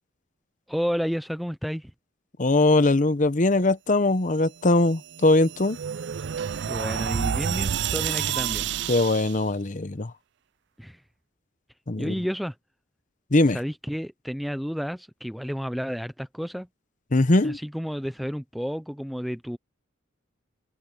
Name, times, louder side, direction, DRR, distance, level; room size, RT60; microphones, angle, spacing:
voice 1, 0.7-1.9 6.6-8.7 10.8-11.0 12.0-12.6 13.5-16.7 17.4-19.6, equal, ahead, 0.4 m, -31 dB
voice 2, 2.4-5.8 8.9-10.1 11.9-12.1 13.3-13.6 17.1-17.6, left 2 dB, 40° left, 0.9 m, -21 dB
sound 1, 4.9-9.4, right 8 dB, 60° right, 0.4 m, -29 dB
head